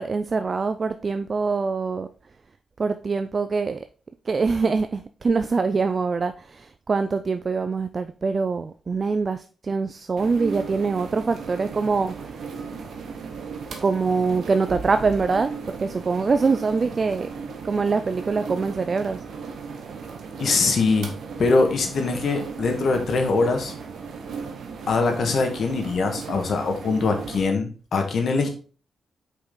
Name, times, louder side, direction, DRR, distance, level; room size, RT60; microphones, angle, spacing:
voice 1, 0.0-2.1 2.8-3.8 4.3-12.4 13.8-15.5 15.8-17.3 17.6-19.2, right 4 dB, 50° right, 0.4 m, -24 dB
sound 1, 10.2-27.4, right 5 dB, 75° right, 1.0 m, -36 dB
voice 2, 20.4-21.1 21.4-23.7 24.9-28.5, left 4 dB, 65° left, 1.4 m, -22 dB
5.4 x 4.7 x 3.8 m
supercardioid pair, 50°, 0 cm